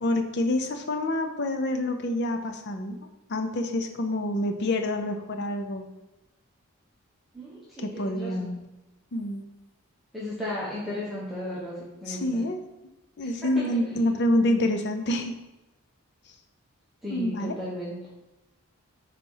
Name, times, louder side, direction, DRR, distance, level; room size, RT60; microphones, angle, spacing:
voice 1, 0.0-3.0 3.3-5.9 7.8-8.7 9.1-9.4 12.1-12.6 13.2-15.3 17.1-17.5, left 1 dB, 50° left, 6 dB, 0.6 m, -27 dB
voice 2, 7.3-8.5 10.1-12.4 13.4-13.6 17.0-18.0, left 1 dB, ahead, -9 dB, 1.0 m, -35 dB
4.2 x 4.2 x 5.5 m, 0.98 s
head